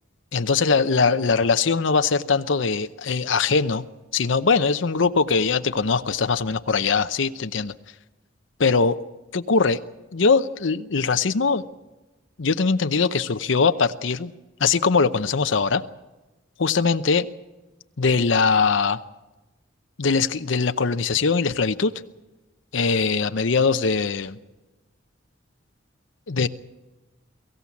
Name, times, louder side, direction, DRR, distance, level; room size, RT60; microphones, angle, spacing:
voice 1, 0.3-3.8 4.1-7.7 8.6-9.0 9.3-9.8 10.1-11.6 12.4-14.3 14.6-15.8 16.6-17.3 18.0-19.0 20.0-21.9 22.7-24.4 26.3-26.5, left 4 dB, 70° left, 10 dB, 0.8 m, -21 dB
23.5 x 15.5 x 8.4 m, 1.1 s
head